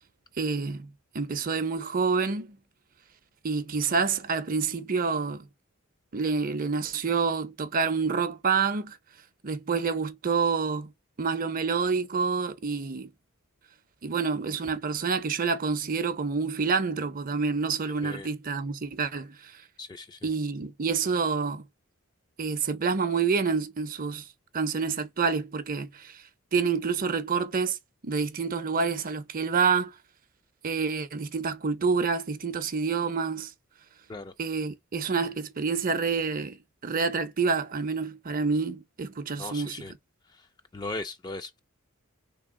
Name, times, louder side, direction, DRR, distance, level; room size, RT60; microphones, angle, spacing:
voice 1, 0.4-2.6 3.4-5.5 6.1-9.0 9.4-10.9 11.2-13.1 14.0-19.6 20.2-21.6 22.4-24.3 24.5-26.2 26.5-27.8 28.0-30.0 30.6-33.5 34.4-39.8, right 5 dB, 40° right, 0.6 m, -28 dB
voice 2, 19.8-20.3 34.1-34.3 39.4-39.9 40.3-40.5 40.7-41.6, left 2 dB, 20° left, 0.3 m, -38 dB
3.3 x 2.9 x 3.6 m
head